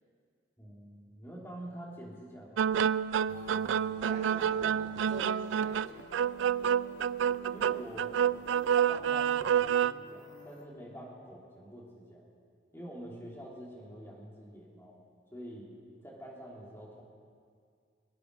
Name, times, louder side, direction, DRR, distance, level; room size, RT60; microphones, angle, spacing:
voice 1, 0.6-2.7 7.5-8.1 8.9-12.2 12.7-15.0 15.3-15.7 16.0-17.0, equal, 15° left, -4 dB, 3.1 m, -47 dB
sound 1, 2.6-9.9, right 8 dB, 75° right, 0.3 m, -28 dB
sound 2, 3.3-10.7, left 1 dB, 80° left, 1.6 m, -52 dB
voice 2, 4.0-6.0, right 1 dB, 40° right, -4 dB, 2.3 m, -45 dB
22.0 x 9.8 x 6.7 m, 2.1 s
head